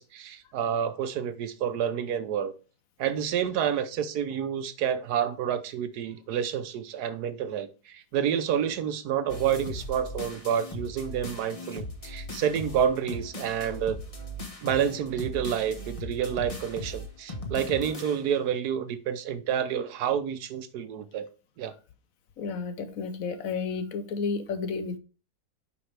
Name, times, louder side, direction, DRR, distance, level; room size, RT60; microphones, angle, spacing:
voice 1, 0.0-2.5 3.0-14.0 14.6-21.3 21.6-21.8, right 8 dB, 80° right, 1.3 m, -29 dB
sound 1, 9.3-18.4, left 1 dB, 25° left, 1.1 m, -38 dB
voice 2, 22.4-25.0, left 5 dB, 65° left, 1.1 m, -32 dB
8.5 x 5.2 x 3.3 m
omnidirectional pair, 1.7 m